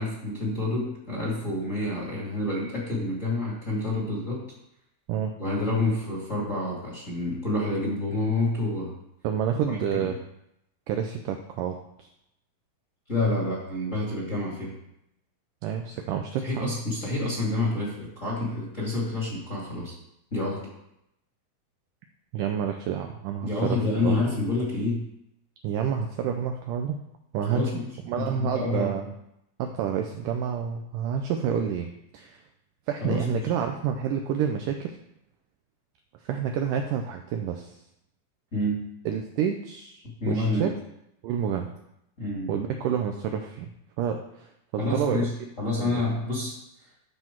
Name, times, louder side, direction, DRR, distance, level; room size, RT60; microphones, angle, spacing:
voice 1, 0.0-4.4 5.4-8.9 9.7-10.1 13.1-14.7 16.4-19.9 20.3-20.7 23.4-25.1 27.5-27.9 28.2-29.0 33.0-33.5 38.5-38.9 40.2-40.7 42.2-42.6 44.8-46.6, left 2 dB, 25° left, -5 dB, 1.9 m, -28 dB
voice 2, 9.2-10.2 10.9-12.1 15.6-16.7 22.3-24.1 25.6-27.0 27.3-27.6 28.1-29.1 29.6-32.4 32.9-35.0 36.2-37.7 39.1-40.7 41.2-41.7 42.5-43.7 44.0-45.3 45.8-46.0, right 8 dB, 85° right, 4 dB, 1.9 m, -29 dB
12.5 x 5.8 x 4.5 m, 0.81 s
omnidirectional pair, 4.5 m